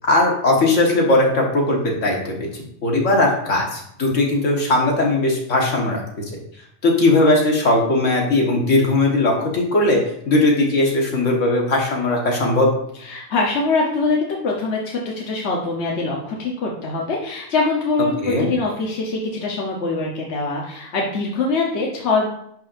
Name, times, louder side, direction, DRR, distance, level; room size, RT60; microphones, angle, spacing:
voice 1, 0.1-2.5 2.8-6.2 6.8-10.0 10.3-12.7 18.2-18.5, left 2 dB, 80° left, -1 dB, 1.9 m, -18 dB
voice 2, 13.0-22.3, left 3 dB, 65° left, -2 dB, 1.3 m, -23 dB
10.5 x 4.7 x 2.6 m, 0.73 s
omnidirectional pair, 1.3 m